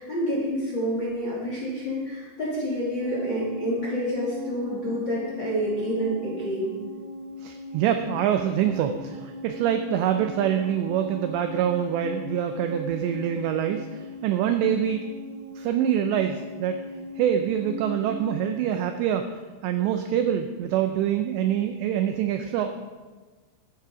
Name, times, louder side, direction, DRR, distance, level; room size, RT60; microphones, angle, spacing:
voice 1, 0.0-6.7, equal, 30° left, -6 dB, 2.4 m, -28 dB
sound 1, 3.0-18.4, left 1 dB, 55° right, 2.4 m, -39 dB
voice 2, 7.4-15.0 15.6-16.8 17.2-19.3 19.6-22.7, right 9 dB, 85° right, 6 dB, 2.5 m, -25 dB
12.5 x 9.5 x 4.9 m, 1.4 s
omnidirectional pair, 5.8 m